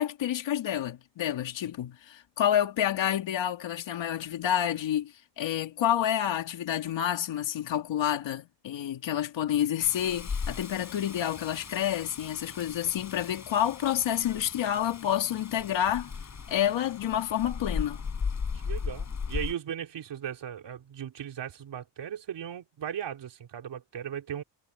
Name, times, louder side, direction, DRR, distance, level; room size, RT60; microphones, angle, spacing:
voice 1, 0.0-16.1 16.5-18.0, left 10 dB, 85° left, 2.9 m, -29 dB
Rain, 9.8-19.5, left 5 dB, 40° left, 7.7 m, -37 dB
voice 2, 18.6-24.4, right 9 dB, 70° right, 3.8 m, -37 dB
cardioid pair, 125°, 44 cm